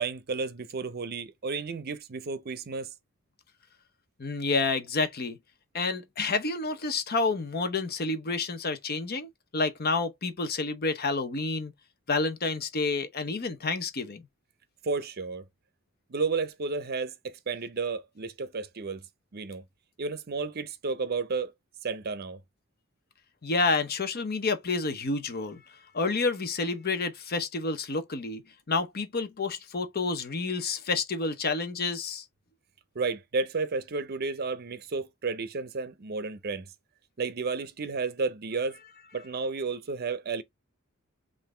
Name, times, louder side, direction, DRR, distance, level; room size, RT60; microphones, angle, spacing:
voice 1, 0.0-2.9 6.2-6.3 14.8-15.4 16.1-19.0 19.3-19.6 20.0-21.5 21.8-22.4 32.9-36.7 37.2-38.8 39.1-40.4, right 4 dB, 50° right, 0.6 m, -32 dB
voice 2, 4.2-5.4 5.7-11.7 12.1-14.2 23.4-25.6 25.9-28.4 28.7-32.2, left 3 dB, 50° left, 0.8 m, -29 dB
5.6 x 2.6 x 3.2 m
head